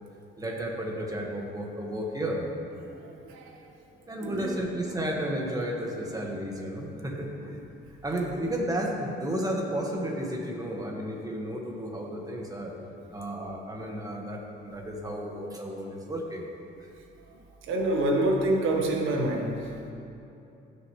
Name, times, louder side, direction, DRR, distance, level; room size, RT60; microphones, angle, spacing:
voice 1, 0.4-2.5 4.1-7.6 8.0-12.7 13.1-16.5 16.8-16.9, right 1 dB, 20° right, 0 dB, 1.7 m, -33 dB
voice 2, 2.9-3.6 4.2-4.6 13.3-13.4 17.3-19.9, right 1 dB, 90° right, 1 dB, 1.5 m, -28 dB
16.0 x 6.6 x 3.3 m, 2.7 s
cardioid pair, 90°, 20 cm